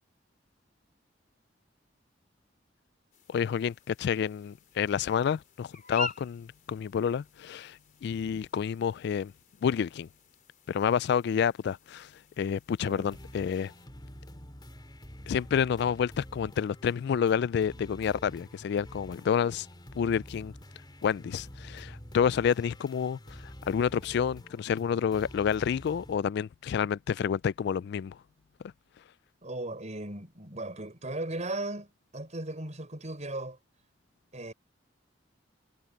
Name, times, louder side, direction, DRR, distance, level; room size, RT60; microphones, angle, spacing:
sound 1, 3.1-13.9, left 2 dB, 45° left, 3.9 m, -46 dB
voice 1, 3.3-9.3 9.6-10.1 10.7-12.1 12.4-13.7 15.3-19.7 20.0-20.5 21.0-23.4 23.7-28.2, left 7 dB, 60° left, 0.3 m, -29 dB
voice 2, 12.8-13.2 29.4-33.6 34.3-34.5, right 2 dB, 40° right, 5.9 m, -37 dB
sound 2, 13.0-26.2, equal, 25° left, 3.3 m, -48 dB
head